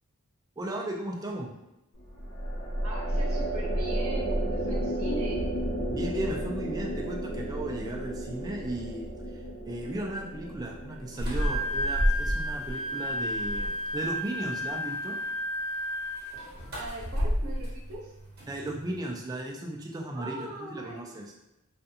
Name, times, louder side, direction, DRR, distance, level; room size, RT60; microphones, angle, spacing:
voice 1, 0.6-1.5 5.9-9.1 9.3-15.2 18.5-21.2, right 1 dB, 15° right, -1 dB, 0.3 m, -36 dB
sound 1, 2.0-13.4, right 1 dB, 60° left, 0.6 m, -33 dB
voice 2, 2.8-5.4 16.7-18.1 18.4-18.5 20.1-21.0, right 2 dB, 80° right, -3 dB, 0.7 m, -41 dB
Wind instrument woodwind instrument, 11.2-16.5, equal, 90° left, 1.0 m, -33 dB
sound 2, 11.2-12.7 13.1-14.0 16.2-19.0, equal, 45° right, 0.8 m, -31 dB
2.4 x 2.3 x 2.7 m, 0.92 s
head